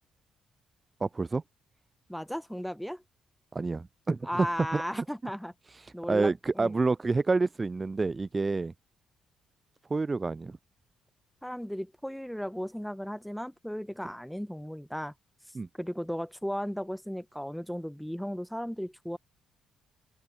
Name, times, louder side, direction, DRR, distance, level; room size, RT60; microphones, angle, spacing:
voice 1, 1.0-1.4 3.5-4.5 4.7-4.8 5.7-8.7 9.9-10.5 15.5-15.7, right 3 dB, 25° right, 0.3 m, -28 dB
voice 2, 2.1-3.0 4.2-5.5 5.9-6.7 11.4-15.1 15.7-19.2, equal, ahead, 2.5 m, -35 dB
open air
cardioid pair, 90°, 0 cm